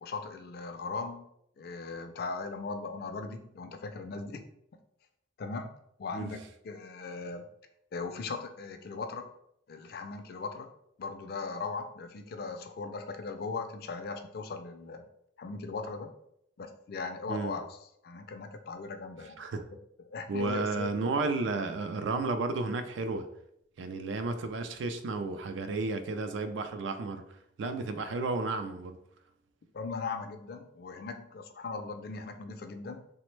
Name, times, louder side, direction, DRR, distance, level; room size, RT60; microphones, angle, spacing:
voice 1, 0.0-1.2 1.6-4.4 5.4-5.7 6.0-7.5 7.9-9.3 9.7-10.7 11.0-15.0 15.4-16.1 16.6-17.8 18.0-19.4 20.0-20.9 29.7-33.2, left 4 dB, 55° left, 6 dB, 0.3 m, -38 dB
voice 2, 20.3-23.3 23.8-27.2 27.6-29.0, right 3 dB, 80° right, 8 dB, 0.4 m, -32 dB
3.2 x 2.1 x 3.1 m, 0.74 s
head